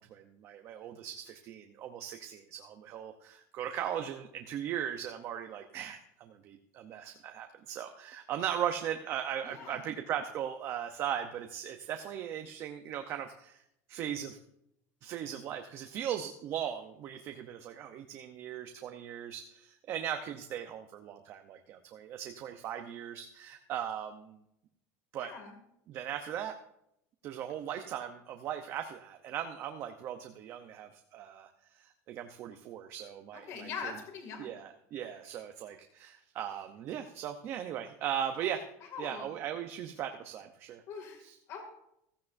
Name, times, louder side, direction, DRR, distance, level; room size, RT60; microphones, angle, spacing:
voice 1, 0.0-13.6 13.9-14.4 15.0-24.4 25.1-25.3 25.9-26.5 27.2-34.0 34.4-38.6 39.0-40.8 41.2-41.3, right 9 dB, 35° right, 5 dB, 0.7 m, -38 dB
voice 2, 9.4-9.8 25.2-25.6 33.3-34.6 38.9-39.3 40.9-41.2 41.5-41.6, left 6 dB, 40° left, 4 dB, 2.3 m, -42 dB
15.5 x 14.5 x 2.6 m, 0.76 s
cardioid pair, 175°, 8 cm